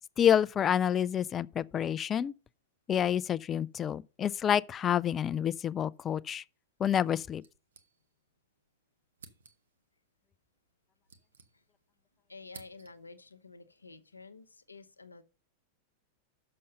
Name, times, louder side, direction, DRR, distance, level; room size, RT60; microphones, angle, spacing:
voice 1, 0.2-2.3 2.9-6.4 6.8-7.4, left 9 dB, 25° left, 0.3 m, -28 dB
sound 1, 7.4-8.4 8.7-8.8 9.1-9.8 10.7-12.0 12.2-13.2, right 5 dB, 70° right, 0.9 m, -56 dB
voice 2, 12.3-15.2, left 3 dB, 80° left, 0.7 m, -50 dB
6.8 x 6.4 x 5.5 m
figure-of-eight pair, 90°, 0 cm